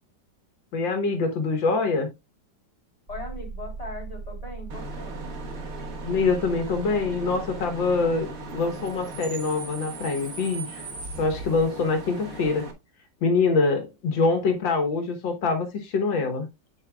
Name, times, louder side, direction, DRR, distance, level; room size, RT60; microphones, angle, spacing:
voice 1, 0.7-2.1 6.0-8.3 8.5-10.9 11.2-12.7 13.2-16.5, left 4 dB, 85° left, 2.1 m, -24 dB
voice 2, 3.1-5.3, left 2 dB, 20° left, 3.7 m, -39 dB
sound 1, 3.1-9.2, right 4 dB, 30° right, 4.6 m, -40 dB
Bus / Idling / Screech, 4.7-12.7, right 2 dB, 50° right, 1.7 m, -38 dB
8.9 x 7.4 x 2.3 m
omnidirectional pair, 2.0 m